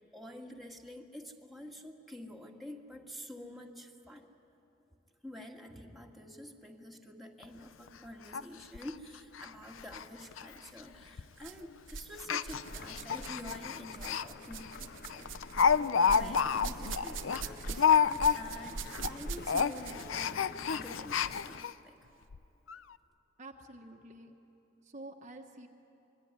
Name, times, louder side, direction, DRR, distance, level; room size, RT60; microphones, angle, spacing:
voice 1, 0.0-4.3 5.2-15.3 15.5-22.0, left 1 dB, ahead, -1 dB, 1.9 m, -48 dB
Speech, 7.4-7.5 7.9-8.0 8.3-8.4 8.7-8.9 9.3-9.5 9.8-10.0 10.3-10.4 11.2-11.4 12.2-14.2 14.6-14.7 15.1-18.7 18.9-19.1 19.4-21.7 22.3-22.4 22.7-22.8, left 6 dB, 90° left, 0.6 m, -29 dB
sound 1, 10.4-10.6 11.4-12.1 12.4-20.2 21.1-21.2 22.0-22.1, right 4 dB, 70° right, 0.9 m, -43 dB
sound 2, 12.6-21.6, left 4 dB, 50° left, 0.7 m, -50 dB
voice 2, 23.4-24.3 24.8-25.7, right 2 dB, 40° right, 2 dB, 1.3 m, -48 dB
26.5 x 22.5 x 9.7 m, 2.9 s
head